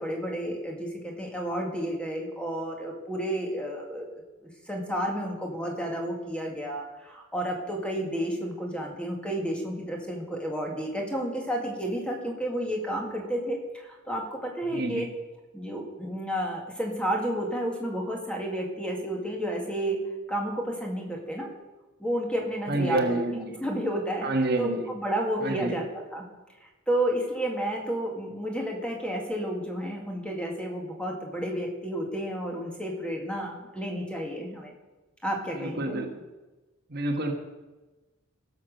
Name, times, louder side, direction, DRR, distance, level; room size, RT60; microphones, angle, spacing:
voice 1, 0.0-4.2 4.7-15.1 15.5-20.0 20.3-21.5 22.0-23.2 23.6-24.3 24.6-26.2 26.9-34.7 35.2-36.1, right 1 dB, 5° left, 0 dB, 1.9 m, -31 dB
voice 2, 14.7-15.1 22.7-23.6 24.2-24.9 25.4-25.8 35.5-36.1 36.9-37.3, right 2 dB, 50° right, 4 dB, 1.4 m, -28 dB
16.5 x 7.1 x 6.5 m, 1.2 s
head